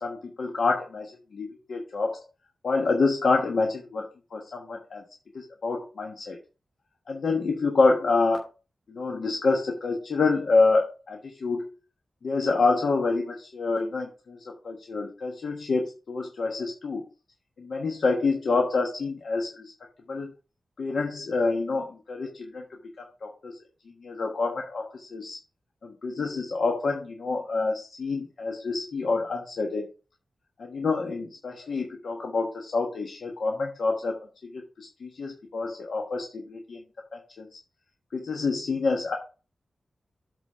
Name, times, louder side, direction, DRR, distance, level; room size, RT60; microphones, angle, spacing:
voice 1, 0.0-2.2 2.6-4.1 4.3-5.0 5.3-6.4 7.1-8.5 8.9-11.7 12.2-17.0 17.6-19.7 20.1-20.3 20.8-22.7 23.2-23.6 24.0-25.4 25.8-29.9 30.6-34.1 34.4-36.8 37.1-37.6 38.1-39.2, left 3 dB, 70° left, 1 dB, 1.3 m, -27 dB
8.1 x 4.1 x 5.5 m, 0.33 s
wide cardioid pair, 140°, 0 cm